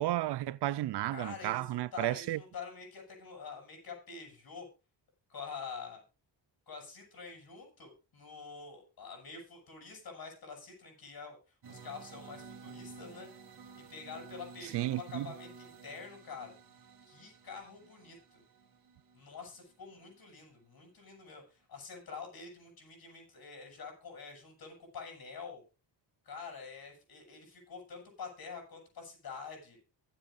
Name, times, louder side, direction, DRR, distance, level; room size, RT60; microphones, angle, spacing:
voice 1, 0.0-2.4 14.7-15.3, right 15 dB, 65° right, 0.5 m, -33 dB
voice 2, 1.1-4.7 5.3-6.0 6.7-13.3 13.7-16.5 17.1-18.4 19.1-25.6 26.2-29.8, left 5 dB, 55° left, 7.4 m, -47 dB
sound 1, 11.6-20.4, right 5 dB, 50° right, 2.5 m, -53 dB
23.5 x 8.1 x 2.5 m
cardioid pair, 130°, 43 cm